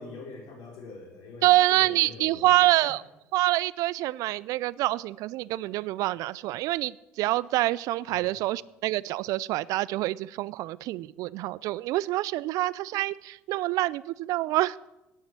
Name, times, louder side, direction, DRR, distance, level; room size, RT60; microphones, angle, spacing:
voice 1, 0.0-2.9 8.1-8.3, left 3 dB, 65° left, 0 dB, 4.6 m, -44 dB
voice 2, 1.4-3.0 3.3-14.8, right 17 dB, 60° right, 21 dB, 0.4 m, -26 dB
10.0 x 9.1 x 8.5 m, 0.97 s
hypercardioid pair, 65°, 7 cm